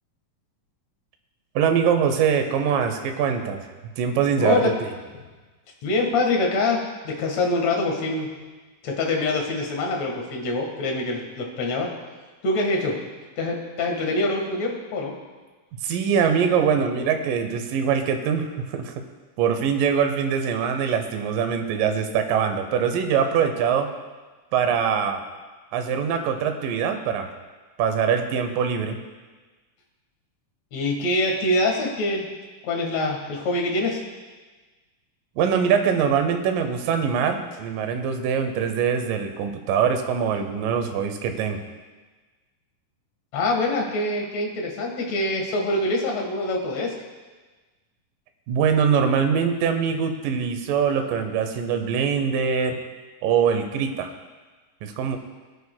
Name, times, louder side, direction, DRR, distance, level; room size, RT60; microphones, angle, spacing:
voice 1, 1.6-3.7 4.0-4.9 15.8-18.9 19.4-23.9 24.5-25.2 25.7-27.3 27.8-29.0 35.4-41.6 48.5-52.8 53.2-54.1 54.8-55.2, right 7 dB, 80° right, 6 dB, 2.5 m, -23 dB
voice 2, 4.4-4.7 5.8-8.3 8.8-11.9 12.4-13.0 13.4-15.1 30.7-32.3 32.6-34.0 43.3-46.9, left 2 dB, 55° left, 0 dB, 2.6 m, -24 dB
20.5 x 9.6 x 2.2 m, 1.3 s
omnidirectional pair, 3.9 m